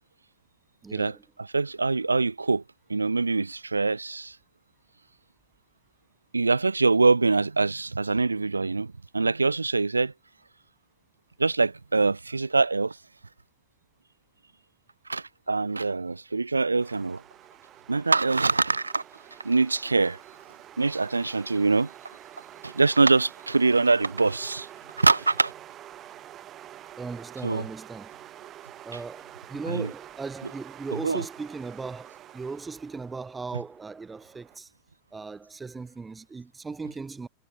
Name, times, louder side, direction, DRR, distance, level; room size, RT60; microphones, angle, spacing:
voice 1, 0.8-1.2 27.0-28.2 28.8-34.7 35.1-37.3, right 4 dB, 10° right, 5.2 m, -38 dB
voice 2, 1.5-2.6 2.9-4.4 6.3-10.1 11.4-13.0 15.1-17.2 17.9-19.0 19.4-20.2 20.8-21.9 22.6-24.7 25.0-25.5 27.4-27.6 29.7-29.9 31.0-31.2, right 3 dB, 80° right, 0.8 m, -24 dB
sound 1, 16.8-34.6, right 12 dB, 30° right, 5.4 m, -47 dB
figure-of-eight pair, 90°, 0 cm